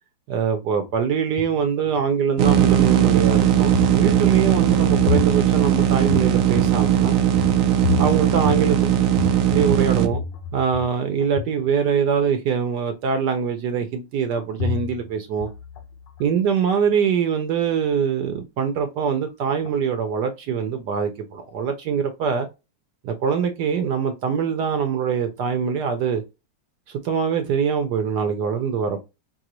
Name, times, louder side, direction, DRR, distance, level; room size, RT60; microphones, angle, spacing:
voice 1, 0.3-7.2 8.0-8.9 9.5-10.2 10.5-15.5 16.2-22.5 23.0-26.2 26.9-29.0, right 6 dB, 70° right, 1.2 m, -23 dB
sound 1, 0.9-2.1 2.5-3.3 3.7-10.9 11.2-11.7 14.4-15.1 15.4-16.4 19.4-19.7 20.0-20.1, left 7 dB, 75° left, 1.3 m, -30 dB
sound 2, 2.4-10.1, right 10 dB, 90° right, 0.7 m, -18 dB
4.7 x 2.5 x 2.9 m
omnidirectional pair, 2.1 m